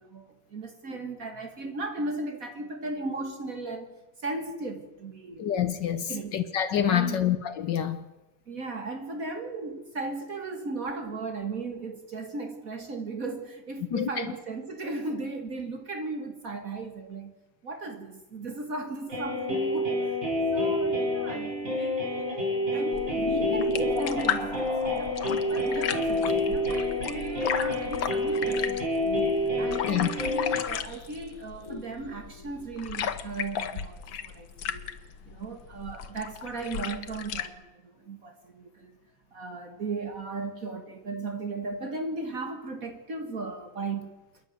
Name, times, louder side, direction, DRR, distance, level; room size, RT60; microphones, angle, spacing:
voice 1, 0.0-5.8 6.1-6.4 6.9-7.2 8.5-17.3 17.6-20.2 20.5-25.2 25.5-34.9 35.3-38.9 39.3-44.2, right 3 dB, 45° right, 1.9 m, -36 dB
voice 2, 5.4-8.0 13.9-14.1 29.8-30.1, left 10 dB, 70° left, 1.6 m, -27 dB
sound 1, 19.1-30.6, left 1 dB, 75° right, 5.6 m, -28 dB
sound 2, 20.3-21.8 22.3-22.6 23.2-31.3 31.6-33.8 34.1-34.2, left 1 dB, 15° left, 2.1 m, -41 dB
sound 3, 22.9-37.5, left 8 dB, 90° left, 1.8 m, -35 dB
27.5 x 11.0 x 9.3 m
omnidirectional pair, 2.1 m